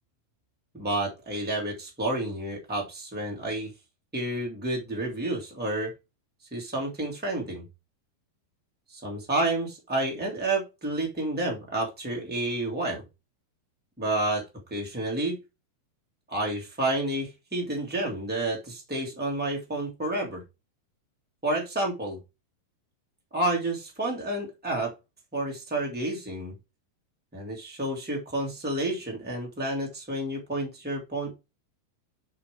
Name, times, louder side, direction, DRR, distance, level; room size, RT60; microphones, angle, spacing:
voice 1, 0.7-3.7 4.1-5.9 6.5-7.6 8.9-13.0 14.0-14.4 14.7-15.4 16.3-20.4 21.4-22.2 23.3-24.9 25.3-26.5 27.3-31.3, right 2 dB, 5° right, -1 dB, 1.0 m, -30 dB
5.5 x 5.1 x 5.1 m, 0.24 s
omnidirectional pair, 4.6 m